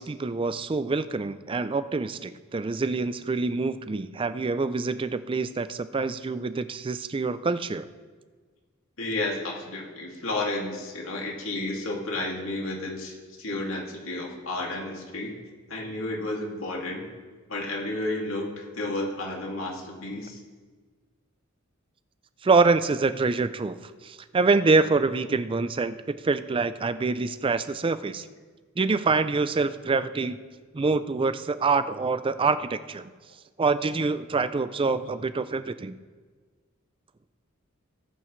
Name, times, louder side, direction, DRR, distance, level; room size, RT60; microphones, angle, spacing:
voice 1, 0.0-7.9 22.4-23.8 24.0-28.3 28.8-30.4 30.7-33.1 33.6-35.9, right 4 dB, 25° right, 13 dB, 0.4 m, -25 dB
voice 2, 9.0-15.4 15.7-17.1 17.5-20.4, left 2 dB, 85° left, -2 dB, 2.3 m, -32 dB
18.5 x 9.0 x 3.2 m, 1.5 s
head